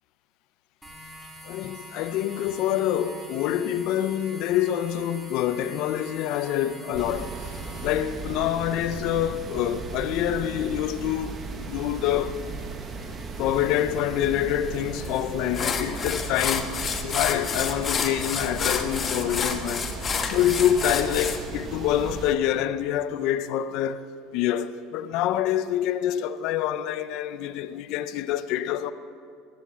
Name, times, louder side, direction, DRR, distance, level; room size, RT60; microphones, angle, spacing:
sound 1, 0.8-16.1, equal, 5° right, 2.6 m, -46 dB
voice 1, 1.4-12.4 13.4-19.9 20.2-24.1 24.3-28.9, left 11 dB, 65° left, 0.6 m, -26 dB
sound 2, 7.0-22.3, right 4 dB, 35° right, 1.2 m, -36 dB
sound 3, 15.0-15.2 15.5-21.4, left 6 dB, 30° left, 1.3 m, -29 dB
14.0 x 11.5 x 7.6 m
supercardioid pair, 120°, 0 cm